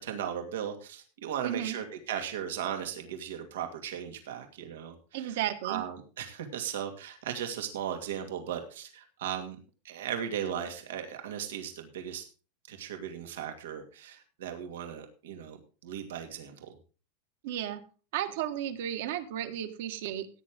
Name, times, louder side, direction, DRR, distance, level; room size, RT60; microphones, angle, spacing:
voice 1, 0.0-9.6 9.8-12.2 12.7-16.8, right 9 dB, 90° right, 5 dB, 2.4 m, -37 dB
voice 2, 1.4-1.8 5.1-5.8 17.4-17.8 18.1-20.3, right 11 dB, 60° right, 8 dB, 1.8 m, -33 dB
16.5 x 9.6 x 3.7 m, 0.35 s
supercardioid pair, 170°, 0 cm